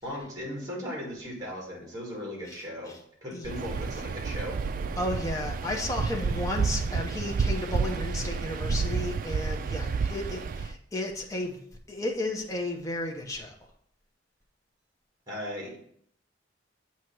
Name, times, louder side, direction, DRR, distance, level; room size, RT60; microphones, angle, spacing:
voice 1, 0.0-4.6 15.3-15.8, equal, 20° right, -2 dB, 2.1 m, -37 dB
voice 2, 2.5-3.0 3.3-3.5 5.0-11.6 11.9-13.5, left 1 dB, 15° left, 0 dB, 0.8 m, -33 dB
Waves surf, 3.4-10.7, right 4 dB, 45° right, 0.3 m, -30 dB
7.8 x 2.9 x 5.9 m, 0.65 s
head